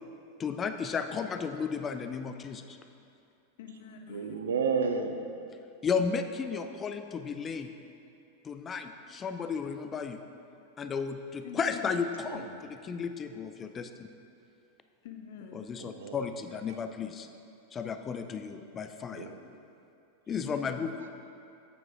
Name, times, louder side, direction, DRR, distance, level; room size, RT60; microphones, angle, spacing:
voice 1, 0.4-2.8 5.8-7.7 8.4-10.2 10.8-14.1 15.5-17.3 17.7-19.3 20.3-20.9, left 6 dB, 20° left, 8 dB, 0.4 m, -34 dB
voice 2, 3.6-4.3 11.4-12.0 15.0-15.8 20.4-20.9, left 7 dB, 55° left, 4 dB, 0.7 m, -46 dB
voice 3, 4.1-5.2 12.3-12.5 15.8-16.3 19.1-19.4, right 5 dB, 65° right, 5 dB, 0.5 m, -31 dB
8.0 x 7.0 x 3.4 m, 2.6 s
figure-of-eight pair, 90°, 0 cm